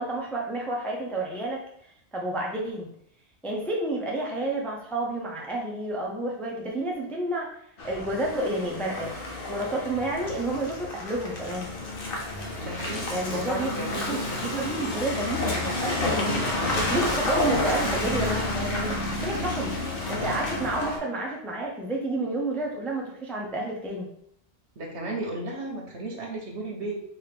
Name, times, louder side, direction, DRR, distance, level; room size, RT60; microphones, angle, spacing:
voice 1, 0.0-1.6 2.1-2.9 3.4-7.5 7.8-9.1 9.5-11.7 13.1-16.5 16.7-18.9 19.2-19.7 20.1-24.1, right 1 dB, ahead, -2 dB, 0.5 m, -30 dB
Car passing by / Engine, 7.8-21.0, left 2 dB, 55° left, 1.0 m, -30 dB
voice 2, 12.6-14.3 24.8-27.0, right 2 dB, 70° right, 0 dB, 1.3 m, -34 dB
4.7 x 2.7 x 3.4 m, 0.69 s
omnidirectional pair, 1.2 m